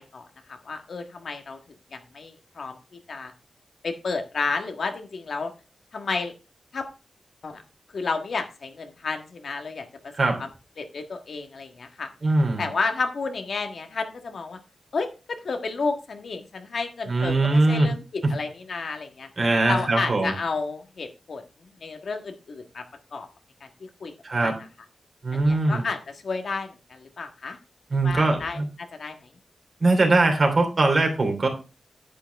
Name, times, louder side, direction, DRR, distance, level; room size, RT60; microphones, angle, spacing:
voice 1, 0.0-1.6 1.9-2.8 3.1-3.3 3.8-5.5 5.9-6.3 6.7-6.8 7.4-7.6 7.9-9.9 10.4-10.5 10.8-12.1 12.6-14.6 14.9-19.3 19.7-21.4 21.8-22.8 23.1-23.3 23.6-23.7 24.0-24.1 24.4-24.5 25.3-27.6 28.0-29.3, left 4 dB, 65° left, 5 dB, 1.5 m, -31 dB
voice 2, 12.2-12.6 17.1-17.9 19.4-20.3 24.2-24.5 25.2-25.8 27.9-28.7 29.8-31.5, right 2 dB, 45° right, 3 dB, 3.1 m, -21 dB
10.0 x 8.6 x 3.4 m, 0.31 s
wide cardioid pair, 115°, 0 cm